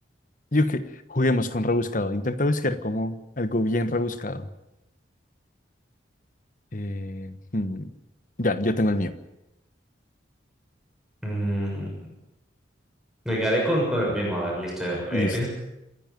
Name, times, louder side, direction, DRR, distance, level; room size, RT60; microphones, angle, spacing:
voice 1, 0.5-0.8 1.1-4.5 6.7-7.9 8.4-9.1 15.1-15.4, left 1 dB, 45° left, 11 dB, 1.3 m, -25 dB
voice 2, 11.2-11.9 13.2-15.5, equal, 5° right, -4 dB, 6.4 m, -26 dB
28.0 x 10.5 x 9.2 m, 0.93 s
head